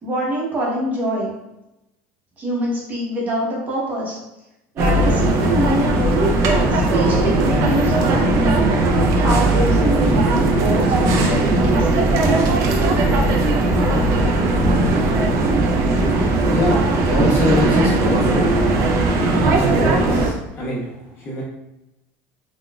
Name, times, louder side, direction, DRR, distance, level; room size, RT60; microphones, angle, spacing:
voice 1, 0.0-1.3 2.4-4.2 4.7-6.3 6.7-8.7 9.1-12.1, right 1 dB, 30° right, -4 dB, 0.9 m, -24 dB
sound 1, 4.8-20.3, right 2 dB, 55° right, 0.5 m, -18 dB
voice 2, 16.5-18.5 19.1-21.4, left 1 dB, 45° left, -5 dB, 1.2 m, -24 dB
3.9 x 2.3 x 2.3 m, 0.92 s
supercardioid pair, 135°, 6 cm